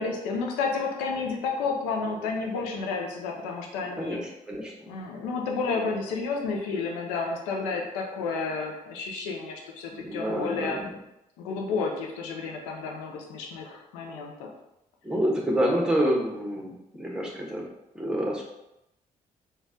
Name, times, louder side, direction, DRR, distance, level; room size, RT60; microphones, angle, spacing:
voice 1, 0.0-4.2 4.9-10.8 11.4-14.5, left 4 dB, 80° left, 1 dB, 0.7 m, -31 dB
voice 2, 4.0-4.9 9.9-10.9 15.0-17.6 17.9-18.4, equal, 5° right, -2 dB, 1.3 m, -28 dB
3.9 x 2.5 x 3.8 m, 0.87 s
hypercardioid pair, 45°, 19 cm